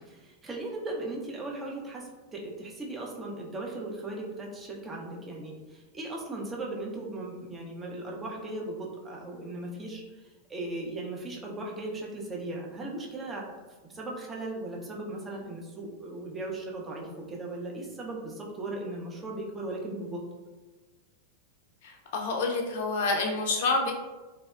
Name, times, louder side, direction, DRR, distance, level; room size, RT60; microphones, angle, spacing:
voice 1, 0.0-13.5 13.8-20.2, right 2 dB, 15° right, -2 dB, 0.5 m, -37 dB
voice 2, 21.8-23.9, left 3 dB, 55° left, 2 dB, 0.4 m, -28 dB
2.9 x 2.0 x 2.3 m, 1.2 s
figure-of-eight pair, 90°, 0 cm